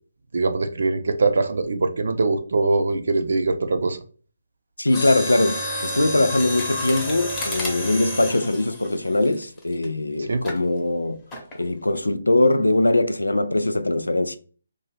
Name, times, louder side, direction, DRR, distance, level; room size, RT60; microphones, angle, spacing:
voice 1, 0.3-4.0 10.2-10.4, right 3 dB, 65° right, 0.5 m, -22 dB
voice 2, 4.8-11.2 11.6-14.4, left 2 dB, 90° left, 0.4 m, -21 dB
Mechanisms, 4.9-9.8 10.4-10.7 11.3-11.6 12.0-12.1, left 1 dB, 15° left, 0.9 m, -30 dB
2.7 x 2.2 x 3.2 m
figure-of-eight pair, 145°, 0 cm